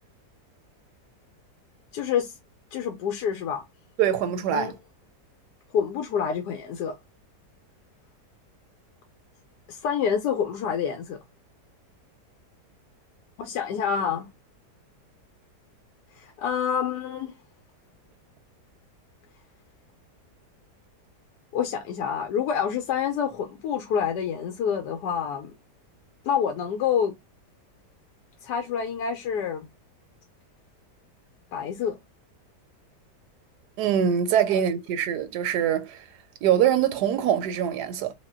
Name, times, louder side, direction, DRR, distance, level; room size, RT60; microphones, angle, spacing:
voice 1, 1.9-2.3 2.7-3.6 4.5-4.7 5.7-7.0 9.7-11.2 13.4-14.3 16.2-17.3 21.5-25.5 26.2-27.1 28.4-29.7 31.5-32.0, left 7 dB, 85° left, 1.2 m, -27 dB
voice 2, 4.0-4.7 33.8-36.0 36.4-38.1, right 9 dB, 80° right, 1.1 m, -23 dB
4.0 x 2.1 x 3.6 m
omnidirectional pair, 1.8 m